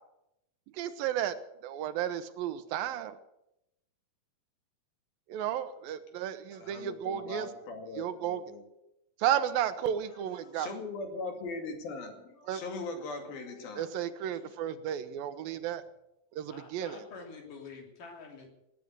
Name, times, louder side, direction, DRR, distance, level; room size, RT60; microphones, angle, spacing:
voice 1, 0.7-1.3 1.6-3.2 5.3-7.5 8.0-8.4 9.2-10.7 12.5-12.6 13.8-15.8 16.3-17.0, right 10 dB, 85° right, 12 dB, 2.7 m, -33 dB
voice 2, 6.6-8.6 10.4-13.9 14.4-14.5, left 3 dB, 85° left, 5 dB, 4.2 m, -40 dB
voice 3, 16.5-18.5, left 4 dB, 65° left, 2 dB, 4.8 m, -47 dB
19.0 x 9.3 x 8.1 m, 0.85 s
omnidirectional pair, 4.1 m